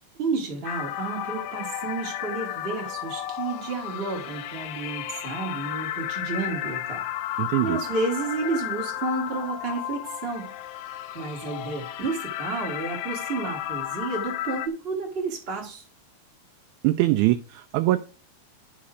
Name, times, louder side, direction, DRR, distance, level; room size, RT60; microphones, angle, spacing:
voice 1, 0.2-10.5 11.1-15.8, right 3 dB, 25° right, 0 dB, 1.3 m, -31 dB
sound 1, 0.6-14.7, left 12 dB, 80° left, 1.9 m, -33 dB
voice 2, 7.4-7.8 16.8-18.0, right 16 dB, 80° right, 8 dB, 1.9 m, -22 dB
10.5 x 4.2 x 4.9 m, 0.37 s
omnidirectional pair, 3.6 m